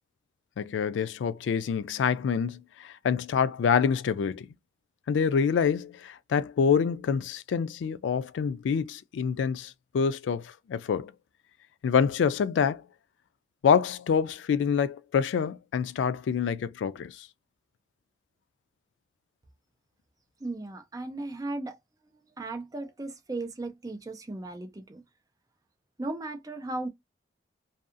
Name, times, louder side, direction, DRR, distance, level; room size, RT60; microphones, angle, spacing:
voice 1, 0.6-4.5 5.1-11.1 11.8-12.8 13.6-17.3, left 6 dB, 90° left, 0.3 m, -26 dB
voice 2, 20.4-21.8 22.4-25.0 26.0-26.9, right 2 dB, 20° right, 0.4 m, -36 dB
2.6 x 2.3 x 2.4 m
head